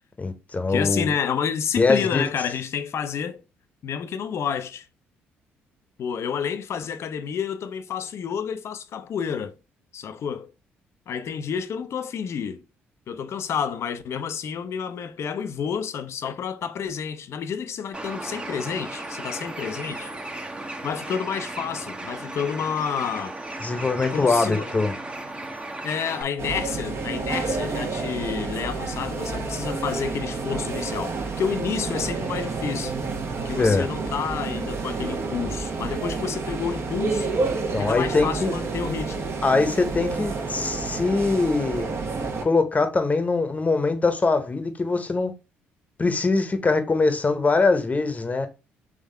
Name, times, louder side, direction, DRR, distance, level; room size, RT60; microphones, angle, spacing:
voice 1, 0.2-1.1 1.8-2.2 23.6-24.9 33.6-33.9 37.4-38.5 39.4-41.9 42.4-45.3 46.0-48.5, left 3 dB, 25° left, 0.9 m, -22 dB
voice 2, 0.7-3.4 3.8-4.9 6.0-9.5 9.9-10.5 11.1-12.6 13.1-20.1 20.8-23.4 24.0-24.7 25.8-32.9 33.4-37.3 37.8-39.3, left 7 dB, 55° left, 0.5 m, -29 dB
Bird, 17.9-26.2, right 2 dB, 20° right, 0.8 m, -35 dB
sound 1, 26.4-42.5, right 4 dB, 50° right, 1.0 m, -29 dB
3.7 x 3.4 x 3.2 m
hypercardioid pair, 50°, 6 cm